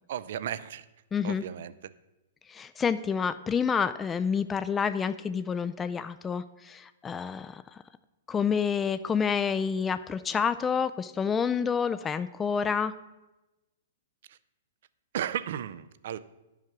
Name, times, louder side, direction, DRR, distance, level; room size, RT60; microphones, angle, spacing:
voice 1, 0.1-0.8 1.2-1.7 15.1-16.2, right 10 dB, 65° right, 15 dB, 0.5 m, -34 dB
voice 2, 1.1-1.4 2.5-7.8 8.3-12.9, left 6 dB, 15° left, 12 dB, 0.3 m, -28 dB
10.0 x 5.7 x 6.0 m, 1.0 s
hypercardioid pair, 140°, 0 cm